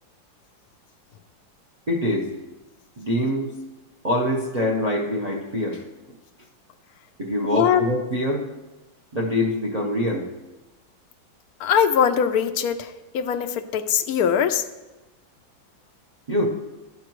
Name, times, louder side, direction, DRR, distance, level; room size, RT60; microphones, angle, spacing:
voice 1, 1.9-2.3 3.0-3.5 4.0-5.8 7.2-8.5 9.1-10.3 16.3-16.5, left 1 dB, 50° right, 0 dB, 0.4 m, -24 dB
voice 2, 7.5-7.8 11.6-14.6, left 8 dB, 75° left, 7 dB, 0.8 m, -21 dB
11.5 x 8.7 x 3.0 m, 1.1 s
omnidirectional pair, 2.1 m